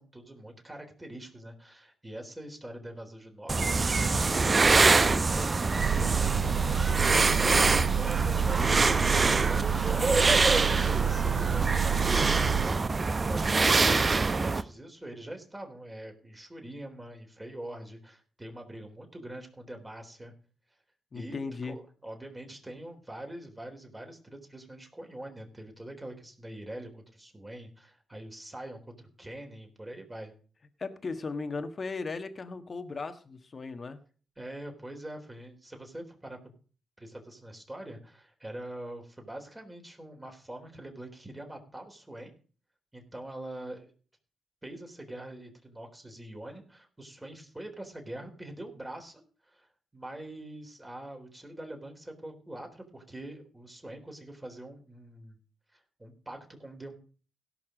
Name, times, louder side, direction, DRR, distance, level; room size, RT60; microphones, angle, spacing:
voice 1, 0.0-20.3 21.1-21.4 21.6-30.3 34.4-36.4 37.0-42.3 42.9-43.9 44.6-55.4 55.7-57.0, right 1 dB, 20° right, 3 dB, 3.8 m, -44 dB
sound 1, 3.5-14.6, right 3 dB, 40° right, 0.7 m, -25 dB
Engine, 5.8-12.7, right 9 dB, 80° right, 0.5 m, -29 dB
voice 2, 21.1-21.8 30.8-34.0, left 4 dB, 45° left, 9 dB, 1.4 m, -37 dB
17.0 x 5.9 x 5.1 m, 0.40 s
hypercardioid pair, 45°, 0 cm